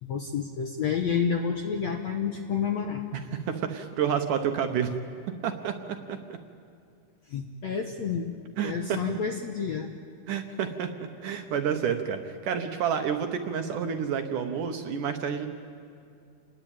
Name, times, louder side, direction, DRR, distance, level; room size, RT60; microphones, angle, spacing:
voice 1, 0.0-3.0 7.3-8.3 8.6-9.9, left 6 dB, 70° left, 4 dB, 1.7 m, -29 dB
voice 2, 3.3-4.9 5.4-6.4 8.6-9.0 10.3-10.9 11.2-15.5, right 7 dB, 65° right, 6 dB, 2.2 m, -29 dB
29.0 x 20.5 x 9.0 m, 2.5 s
omnidirectional pair, 4.6 m